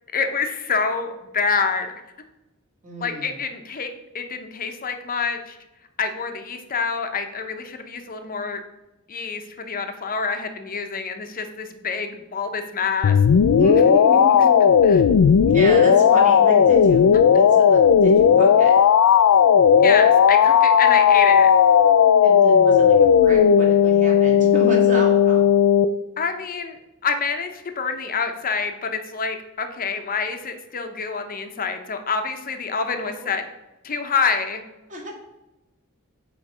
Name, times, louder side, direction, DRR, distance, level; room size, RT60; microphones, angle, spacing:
voice 1, 0.1-1.9 3.0-3.9 4.1-5.6 6.0-8.6 9.1-13.2 14.8-15.0 19.8-21.5 26.2-33.4 33.8-34.6, left 5 dB, 40° left, 7 dB, 0.7 m, -27 dB
voice 2, 2.8-3.3 13.5-14.7 15.5-17.1 17.3-18.7 22.2-25.5 32.8-33.3 34.9-35.1, right 1 dB, 35° right, -1 dB, 1.7 m, -30 dB
sound 1, 13.0-25.9, left 7 dB, 65° left, 0.3 m, -15 dB
8.0 x 3.1 x 4.9 m, 0.98 s
head